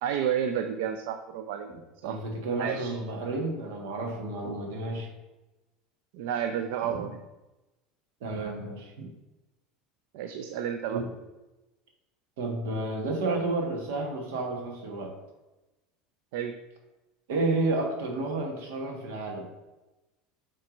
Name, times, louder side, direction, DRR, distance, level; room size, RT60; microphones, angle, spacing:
voice 1, 0.0-1.7 2.0-2.2 2.6-3.0 6.1-7.2 10.1-11.0 16.3-16.5, right 9 dB, 70° right, 7 dB, 0.4 m, -31 dB
voice 2, 1.7-5.1 6.8-7.0 8.2-9.1 10.9-11.1 12.4-15.2 17.3-19.4, right 2 dB, 90° right, 1 dB, 1.4 m, -31 dB
6.0 x 3.3 x 5.1 m, 1.1 s
cardioid pair, 165°, 0 cm